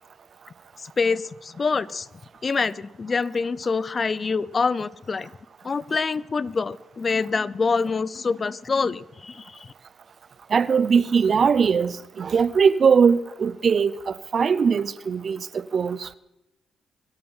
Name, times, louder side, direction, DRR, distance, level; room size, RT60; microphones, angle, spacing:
voice 1, 0.8-2.1 2.4-5.3 5.6-9.7, left 4 dB, 40° left, 0.5 m, -26 dB
voice 2, 10.5-16.1, right 6 dB, 50° right, 0.6 m, -21 dB
24.5 x 8.6 x 5.6 m
cardioid pair, 80°, 0 cm